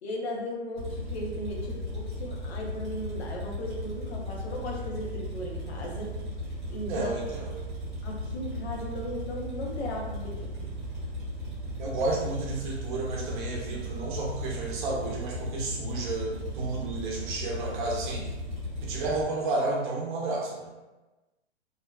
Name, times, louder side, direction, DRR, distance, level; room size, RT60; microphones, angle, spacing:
voice 1, 0.0-6.1 6.7-7.1 8.0-10.7, equal, 65° left, -1 dB, 0.7 m, -36 dB
sound 1, 0.7-19.2, equal, ahead, 0.3 m, -36 dB
voice 2, 6.9-7.9 11.8-18.3 18.8-20.7, right 2 dB, 45° right, -2 dB, 0.6 m, -32 dB
2.7 x 2.1 x 2.2 m, 1.1 s
hypercardioid pair, 140°, 34 cm